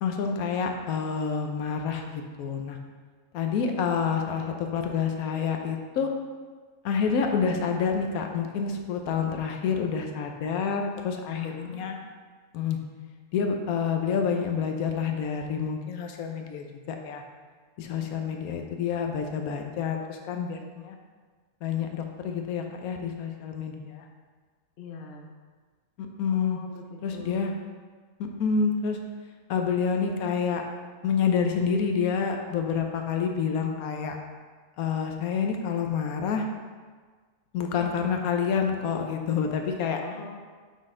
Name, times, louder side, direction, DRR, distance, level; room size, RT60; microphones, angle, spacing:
voice 1, 0.0-2.8 3.3-6.1 6.8-12.0 12.5-12.8 13.3-17.2 17.8-21.0 21.6-24.1 26.0-26.6 27.0-27.5 28.2-29.0 29.5-30.6 31.0-34.2 34.8-36.5 37.5-40.0, left 6 dB, 80° left, 4 dB, 1.1 m, -28 dB
voice 2, 11.3-11.8 18.0-18.6 24.8-25.3 26.3-27.6 40.0-40.4, left 5 dB, 50° left, 1 dB, 0.7 m, -43 dB
7.2 x 4.0 x 3.7 m, 1.5 s
omnidirectional pair, 1.5 m